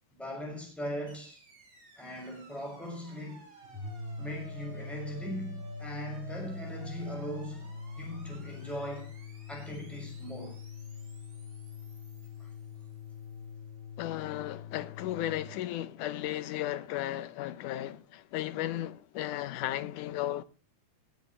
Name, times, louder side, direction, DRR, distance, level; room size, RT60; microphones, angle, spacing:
voice 1, 0.1-1.4 2.0-3.6 4.2-9.1 9.5-10.6 12.4-12.5, equal, ahead, 6.2 m, -40 dB
sound 1, 1.1-13.3, right 1 dB, 40° right, 5.4 m, -55 dB
sound 2, 3.6-15.5, left 4 dB, 65° left, 4.9 m, -43 dB
voice 2, 14.0-20.4, left 13 dB, 85° left, 2.3 m, -35 dB
19.5 x 12.5 x 3.3 m
omnidirectional pair, 3.6 m